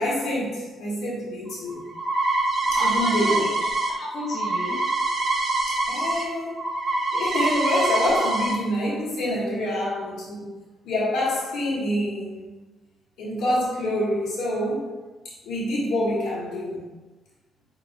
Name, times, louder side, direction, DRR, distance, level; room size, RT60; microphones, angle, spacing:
voice 1, 0.0-1.9 2.8-3.4 5.7-6.6 7.1-10.5 10.8-12.5 13.2-14.9 15.2-16.9, left 1 dB, 80° left, -5 dB, 1.4 m, -26 dB
sound 1, 1.5-6.2 6.5-8.5, right 2 dB, 45° right, 0.8 m, -25 dB
voice 2, 2.7-4.8, left 1 dB, 60° left, -7 dB, 1.0 m, -33 dB
7.0 x 2.9 x 2.2 m, 1.2 s
cardioid pair, 90°, 0 cm